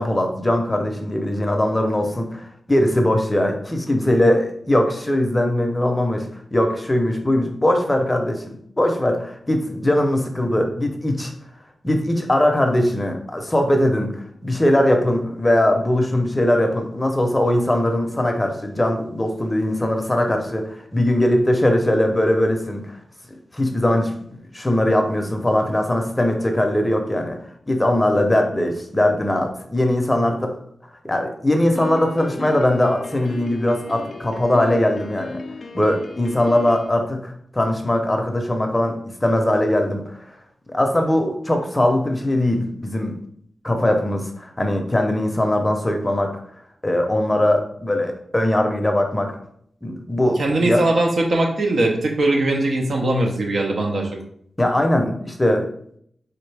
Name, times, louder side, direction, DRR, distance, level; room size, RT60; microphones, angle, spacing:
voice 1, 0.0-11.3 11.8-23.0 23.5-27.4 27.7-30.5 31.0-35.4 35.7-40.0 40.7-43.2 43.6-46.3 46.8-49.3 49.8-50.8 54.6-55.7, left 1 dB, 20° left, 4 dB, 0.6 m, -20 dB
Piano, 31.7-36.9, left 3 dB, 55° left, 0.4 m, -36 dB
voice 2, 50.4-54.1, right 2 dB, 65° right, 1 dB, 0.8 m, -20 dB
4.3 x 2.6 x 3.3 m, 0.65 s
wide cardioid pair, 80°, 0 cm